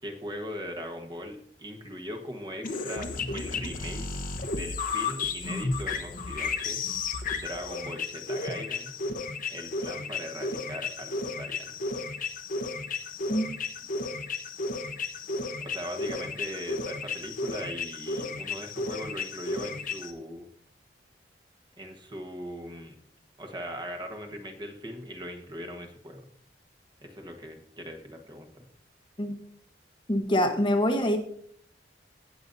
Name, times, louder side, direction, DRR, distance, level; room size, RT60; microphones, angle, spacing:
voice 1, 0.0-4.1 4.5-8.9 9.5-11.8 15.6-20.5 21.8-23.0 23.4-26.2 27.0-28.6, equal, 25° right, 4 dB, 1.3 m, -40 dB
sound 1, 2.6-20.1, left 3 dB, 50° left, 0.9 m, -33 dB
voice 2, 30.1-31.2, equal, 30° left, 4 dB, 1.1 m, -25 dB
17.5 x 6.8 x 2.7 m, 0.62 s
head